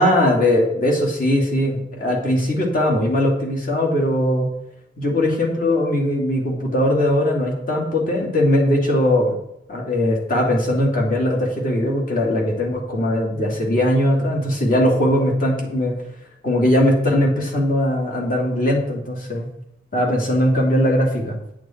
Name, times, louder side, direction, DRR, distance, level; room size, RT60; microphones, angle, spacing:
voice 1, 0.0-4.5 5.0-9.4 9.7-16.0 16.4-19.5 19.9-21.4, left 1 dB, 50° left, -1 dB, 2.6 m, -20 dB
9.1 x 8.5 x 4.5 m, 0.79 s
head